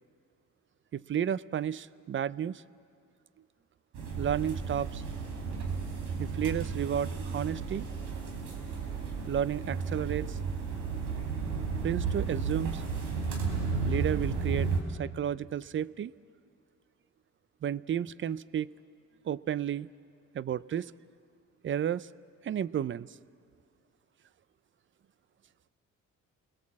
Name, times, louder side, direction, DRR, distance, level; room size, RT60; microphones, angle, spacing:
voice 1, 0.9-2.6 4.2-5.0 6.2-7.9 9.3-10.4 11.8-12.8 13.9-16.1 17.6-18.7 19.2-19.9 20.3-20.9 21.6-22.1 22.4-23.1, right 9 dB, 40° right, 19 dB, 0.5 m, -32 dB
sound 1, 3.9-14.8, right 5 dB, 85° right, 3.7 m, -33 dB
29.0 x 20.5 x 7.4 m, 2.3 s
cardioid pair, 90°, 30 cm